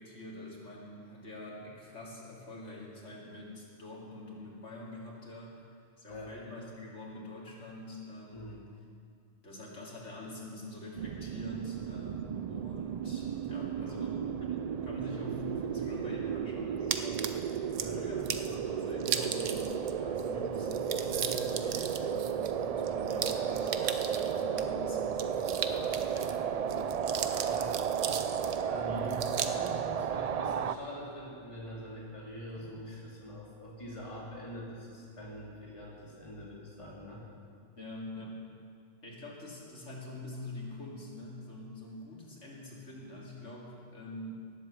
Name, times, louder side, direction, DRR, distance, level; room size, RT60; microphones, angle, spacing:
voice 1, 0.0-5.6 6.0-8.6 9.4-17.5 17.9-25.6 26.1-27.2 28.9-29.2 37.8-38.4 39.0-44.4, left 1 dB, 75° left, -4 dB, 3.3 m, -45 dB
sound 1, 11.0-30.8, right 7 dB, 70° right, 0.3 m, -34 dB
sound 2, 16.9-17.9 18.3-18.5 19.0-19.9 20.2-20.3 20.6-24.6 25.1-26.4 26.7-28.6 29.1-29.7, right 8 dB, 85° right, 1.1 m, -36 dB
voice 2, 25.6-26.0 27.4-27.8 28.6-37.2, equal, 25° left, -5 dB, 2.9 m, -44 dB
18.5 x 7.9 x 7.5 m, 2.2 s
omnidirectional pair, 1.2 m